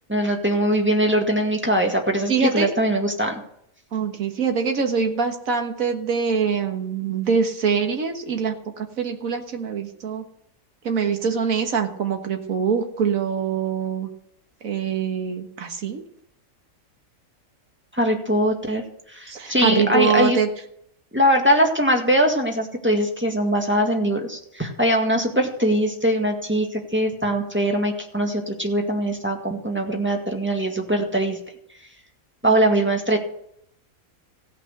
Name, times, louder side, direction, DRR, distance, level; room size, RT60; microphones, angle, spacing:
voice 1, 0.1-3.3 17.9-18.8 19.1-20.4 21.1-31.4 32.4-33.2, equal, 10° right, 2 dB, 1.8 m, -21 dB
voice 2, 2.3-2.7 3.9-10.2 10.8-14.1 14.6-16.0 19.3-20.5, right 6 dB, 75° right, 5 dB, 1.9 m, -24 dB
16.5 x 6.0 x 6.6 m, 0.72 s
omnidirectional pair, 1.4 m